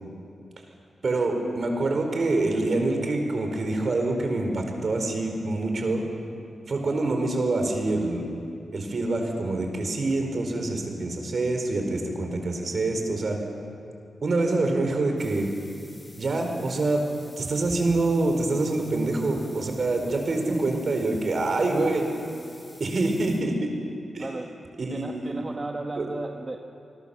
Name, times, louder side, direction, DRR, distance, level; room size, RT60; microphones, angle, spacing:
voice 1, 1.0-6.0 6.7-8.2 8.7-13.4 14.2-15.5 16.2-17.0 17.4-22.1 22.8-23.7 24.1-24.3 24.8-25.4 26.0-26.1, right 2 dB, 50° right, 3 dB, 4.5 m, -26 dB
sound 1, 15.2-23.4, left 1 dB, 20° left, 7.3 m, -51 dB
voice 2, 20.5-20.9 24.2-24.5 24.9-26.6, right 2 dB, 30° right, 2 dB, 1.4 m, -34 dB
27.0 x 20.0 x 7.3 m, 2.6 s
cardioid pair, 90°, 0 cm